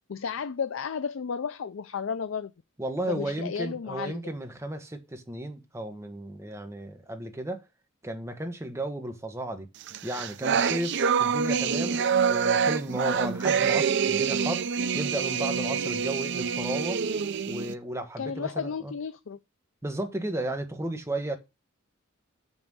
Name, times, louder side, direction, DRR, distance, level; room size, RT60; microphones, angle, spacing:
voice 1, 0.1-2.5 3.1-4.2 18.2-19.4, left 6 dB, 70° left, 0.5 m, -33 dB
voice 2, 2.8-7.6 8.0-9.7 10.0-14.7 14.9-17.0 17.5-18.9 19.8-21.4, right 1 dB, 15° right, 1.2 m, -34 dB
sound 1, 9.9-17.7, right 6 dB, 60° right, 0.5 m, -26 dB
7.1 x 5.5 x 6.2 m
head